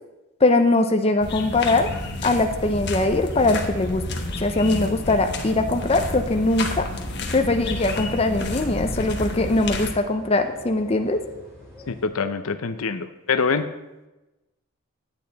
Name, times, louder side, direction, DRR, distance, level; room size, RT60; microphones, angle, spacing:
voice 1, 0.4-1.9 2.2-4.0 4.4-6.9 7.3-11.2, left 2 dB, 30° left, 6 dB, 0.6 m, -21 dB
sound 1, 1.2-9.9, left 2 dB, 50° left, 1.2 m, -30 dB
sound 2, 2.3-12.1, equal, 15° right, 3.1 m, -45 dB
voice 2, 11.9-13.7, left 5 dB, 80° left, 9 dB, 0.7 m, -25 dB
10.5 x 8.6 x 4.0 m, 1.0 s
head